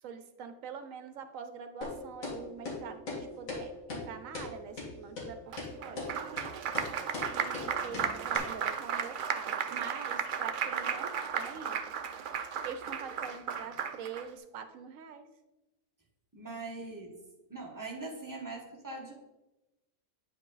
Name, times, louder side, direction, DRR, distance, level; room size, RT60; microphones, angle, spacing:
voice 1, 0.0-6.1 7.3-11.8 12.6-15.3, right 6 dB, 70° right, 9 dB, 1.1 m, -44 dB
sound 1, 1.8-1.9 2.2-2.4 2.7-2.8 3.1-3.2 3.5-3.6 3.9-4.0 4.3-4.5 4.8-4.9 5.2-5.3 5.6-5.7 6.0-6.1 6.4-6.5 6.7-6.9 7.1-7.3 7.5-7.7 7.9-8.1 8.3-8.4, left 4 dB, 75° left, 2.1 m, -38 dB
Applause, 5.5-14.3, right 7 dB, 90° right, 0.4 m, -35 dB
voice 2, 7.9-8.4 16.3-17.2 17.5-19.1, right 3 dB, 15° right, -1 dB, 1.2 m, -42 dB
8.7 x 5.2 x 4.0 m, 0.99 s
omnidirectional pair, 1.5 m